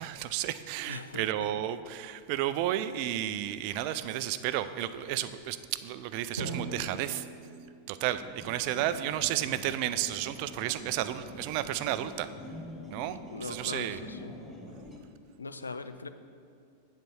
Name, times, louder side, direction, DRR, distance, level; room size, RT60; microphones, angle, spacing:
voice 1, 0.0-5.6 5.8-7.3 7.9-12.3 12.9-14.0, right 12 dB, 45° right, 12 dB, 0.3 m, -32 dB
voice 2, 0.9-1.5 8.7-9.1 13.3-14.3 15.4-16.1, left 4 dB, 75° left, 11 dB, 0.4 m, -41 dB
Drum, 6.4-8.9, right 3 dB, 80° right, 0.9 m, -40 dB
sound 1, 8.1-15.0, left 1 dB, 5° left, 1.0 m, -46 dB
7.7 x 4.4 x 6.2 m, 2.4 s
figure-of-eight pair, 90°, 0 cm